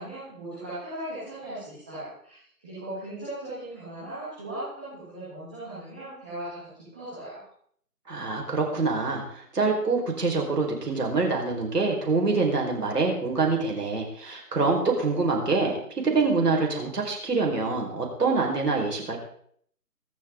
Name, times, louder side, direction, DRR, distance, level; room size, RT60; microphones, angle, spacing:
voice 1, 0.0-7.4, right 1 dB, 5° right, -12 dB, 1.4 m, -38 dB
voice 2, 8.1-19.2, right 3 dB, 80° right, 0 dB, 4.9 m, -25 dB
24.0 x 8.5 x 3.8 m, 0.63 s
hypercardioid pair, 175°, 46 cm